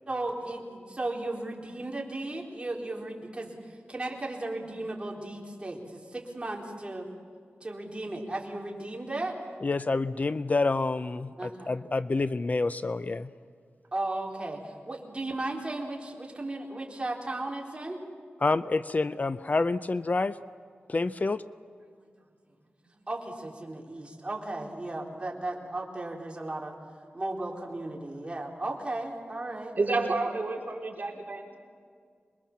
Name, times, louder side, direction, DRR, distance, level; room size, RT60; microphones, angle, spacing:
voice 1, 0.1-7.1 7.6-9.4 11.4-11.7 13.9-18.0 23.1-26.7 27.1-29.7, right 2 dB, 25° right, -1 dB, 4.0 m, -35 dB
voice 2, 9.6-13.3 18.4-20.4 20.9-21.4, left 3 dB, 40° left, 14 dB, 0.6 m, -28 dB
voice 3, 29.8-31.5, right 3 dB, 45° right, -1 dB, 4.0 m, -29 dB
26.0 x 22.0 x 7.4 m, 2.1 s
wide cardioid pair, 95°, 4 cm